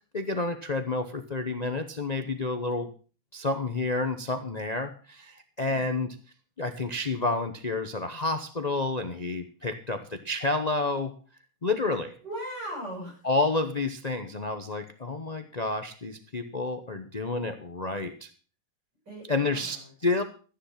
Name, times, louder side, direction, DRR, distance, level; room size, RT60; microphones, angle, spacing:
voice 1, 0.1-2.9 3.3-6.1 6.6-11.1 11.6-12.1 13.2-18.3 19.3-20.2, left 3 dB, 55° left, 7 dB, 0.4 m, -29 dB
voice 2, 5.6-6.0 10.0-10.3 12.2-13.2 19.1-19.9, right 1 dB, 50° right, -2 dB, 8.7 m, -39 dB
14.0 x 10.5 x 5.8 m, 0.39 s
omnidirectional pair, 2.4 m